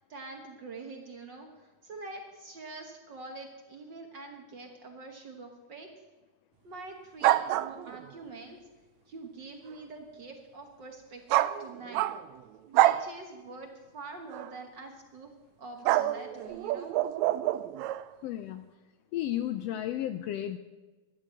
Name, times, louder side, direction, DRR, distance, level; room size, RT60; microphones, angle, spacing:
voice 1, 0.0-5.9 6.6-8.6 9.1-12.1 12.7-15.3 15.6-17.2, right 3 dB, 55° right, 3 dB, 1.3 m, -45 dB
sound 1, 7.2-8.1 11.3-12.4 12.7-13.1 14.3-14.5 15.9-18.0, right 14 dB, 80° right, 1.7 m, -27 dB
voice 2, 18.2-18.7 19.1-20.6, left 12 dB, 85° left, 10 dB, 1.4 m, -33 dB
13.5 x 10.5 x 7.4 m, 1.2 s
omnidirectional pair, 3.5 m